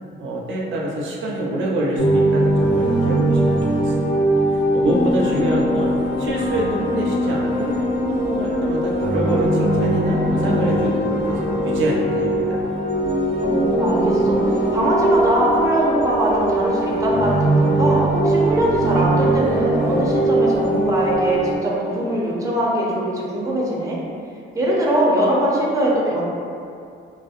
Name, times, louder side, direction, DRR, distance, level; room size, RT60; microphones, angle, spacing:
voice 1, 0.2-4.3 4.7-5.9 6.2-7.7 8.1-12.6, right 1 dB, 75° right, -3 dB, 0.5 m, -25 dB
sound 1, 2.0-21.6, right 1 dB, 65° left, 0.5 m, -21 dB
voice 2, 4.8-5.2 13.4-24.0 24.5-26.2, right 1 dB, 15° right, -5 dB, 0.5 m, -21 dB
sound 2, 5.0-14.7, equal, 50° left, 1.1 m, -30 dB
2.5 x 2.0 x 2.5 m, 2.4 s
cardioid pair, 85°, 20 cm